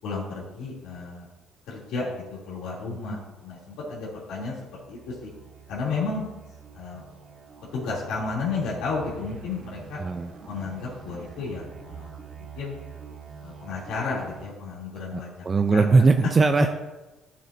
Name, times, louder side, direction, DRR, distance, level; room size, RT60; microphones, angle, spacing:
voice 1, 0.0-1.3 1.7-4.5 4.9-5.3 5.7-6.2 6.7-7.0 7.7-10.0 10.5-12.8 13.4-15.3 15.7-16.1, left 4 dB, 80° left, -7 dB, 3.2 m, -32 dB
sound 1, 3.2-14.5, right 6 dB, 50° right, 1.3 m, -46 dB
voice 2, 10.0-10.3 15.1-16.7, right 4 dB, 30° right, 7 dB, 0.4 m, -20 dB
12.0 x 7.4 x 2.8 m, 1.1 s
cardioid pair, 105°, 0 cm